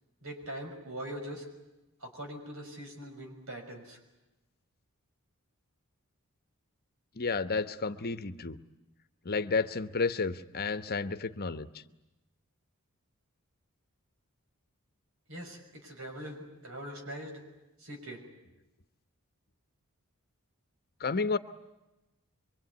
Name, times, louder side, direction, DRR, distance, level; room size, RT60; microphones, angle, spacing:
voice 1, 0.2-1.5 2.0-4.0 15.3-17.4 17.8-18.2, right 1 dB, 70° right, 3 dB, 6.1 m, -42 dB
voice 2, 7.2-8.6 9.2-11.7 21.0-21.4, left 4 dB, 45° left, 11 dB, 1.0 m, -31 dB
24.5 x 24.0 x 9.6 m, 1.0 s
head